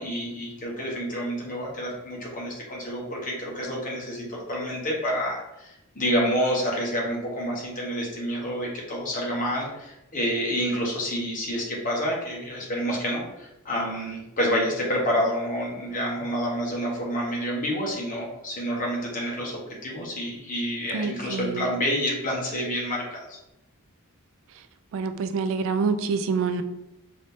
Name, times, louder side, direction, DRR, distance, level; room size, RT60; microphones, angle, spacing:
voice 1, 0.0-23.4, equal, 40° left, -3 dB, 1.1 m, -28 dB
voice 2, 20.9-21.6 24.9-26.6, right 5 dB, 60° right, 9 dB, 0.3 m, -26 dB
3.8 x 2.6 x 3.5 m, 0.89 s
head